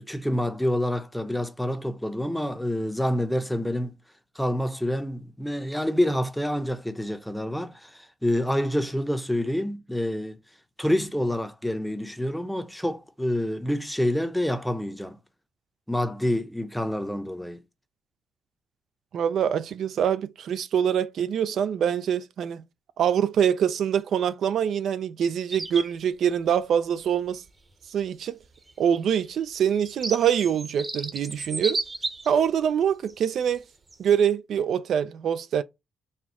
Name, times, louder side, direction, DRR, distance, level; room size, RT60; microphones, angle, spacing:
voice 1, 0.1-3.9 4.4-10.4 10.8-15.2 15.9-17.6, left 1 dB, 5° left, 0.6 m, -27 dB
voice 2, 19.1-22.6 23.0-27.4 27.9-28.4 28.8-31.8 32.3-33.6 34.0-35.6, right 8 dB, 65° right, 0.4 m, -24 dB
sound 1, 25.5-26.0 27.5-27.6 28.7-32.4 33.1-33.3 33.9-34.1, right 2 dB, 25° right, 0.8 m, -33 dB
4.3 x 2.3 x 4.1 m
cardioid pair, 90°, 0 cm